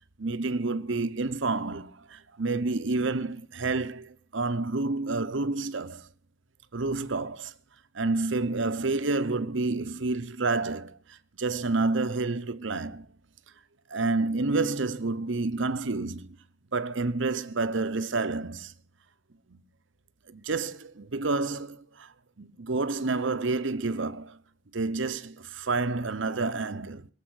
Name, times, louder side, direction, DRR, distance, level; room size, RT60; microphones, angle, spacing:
voice 1, 0.2-6.1 6.7-7.5 7.9-11.0 11.4-13.1 13.9-16.3 16.7-18.7 19.5-19.6 20.3-22.1 22.4-24.4 24.7-27.1, right 3 dB, 65° right, 0.9 m, -29 dB
22.0 x 7.6 x 6.3 m
head